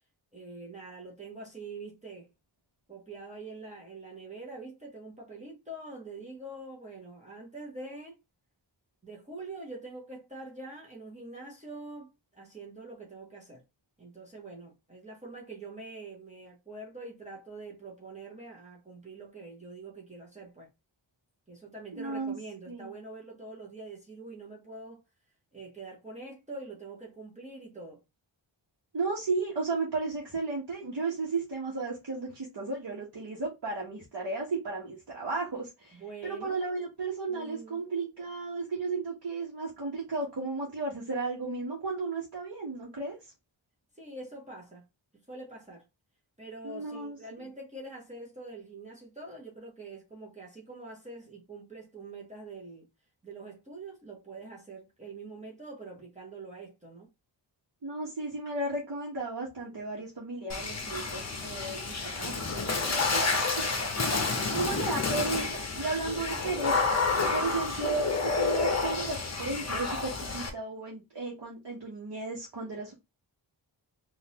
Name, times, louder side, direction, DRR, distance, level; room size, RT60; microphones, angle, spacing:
voice 1, 0.3-2.3 2.9-8.2 9.0-13.6 14.0-20.7 21.5-25.0 25.5-28.0 35.9-36.6 37.3-37.9 43.9-44.9 45.3-45.8 46.4-52.9 53.2-57.1 66.3-66.4 67.1-67.4, right 3 dB, 15° right, 1.1 m, -45 dB
voice 2, 21.9-22.3 22.7-22.9 28.9-43.2 46.6-47.5 57.8-63.2 63.6-63.8 64.4-66.9 67.3-72.9, right 3 dB, 60° right, 1.2 m, -34 dB
Water / Splash splatter, 60.5-70.5, left 4 dB, 35° left, 0.8 m, -30 dB
3.7 x 2.6 x 2.9 m
wide cardioid pair, 60°, 46 cm